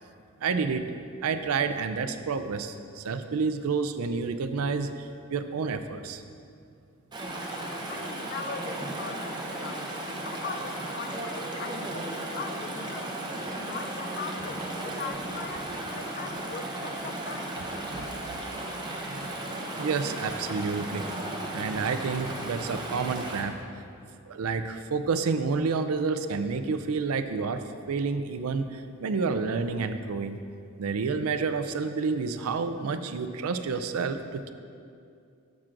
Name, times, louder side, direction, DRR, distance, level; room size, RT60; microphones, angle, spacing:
voice 1, 0.4-0.9 1.2-6.2 19.1-19.3 19.8-21.0 21.5-23.5 24.3-27.6 27.9-30.4 30.8-34.5, right 4 dB, 90° right, 10 dB, 0.5 m, -29 dB
Chatter / Stream, 7.1-23.4, right 1 dB, 20° right, 0.8 m, -35 dB
voice 2, 7.9-13.2 13.6-17.6, left 5 dB, 45° left, 8 dB, 0.4 m, -40 dB
12.0 x 7.3 x 2.5 m, 2.4 s
head